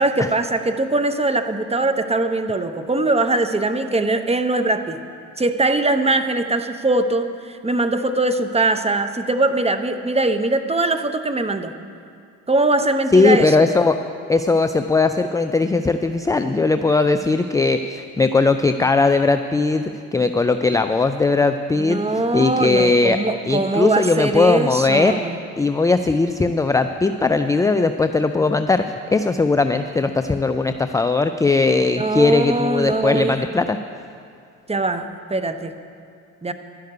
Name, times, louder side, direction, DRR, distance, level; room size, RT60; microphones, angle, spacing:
voice 1, 0.0-5.0 5.4-11.7 12.5-13.7 21.8-25.4 32.0-33.6 34.7-35.7 36.4-36.5, right 2 dB, 15° right, 9 dB, 0.9 m, -21 dB
voice 2, 13.1-14.0 14.3-22.0 22.3-23.2 23.5-25.2 25.6-28.8 29.1-33.8, left 3 dB, 10° left, 8 dB, 0.4 m, -18 dB
11.5 x 6.5 x 9.5 m, 2.3 s
hypercardioid pair, 60°, 39 cm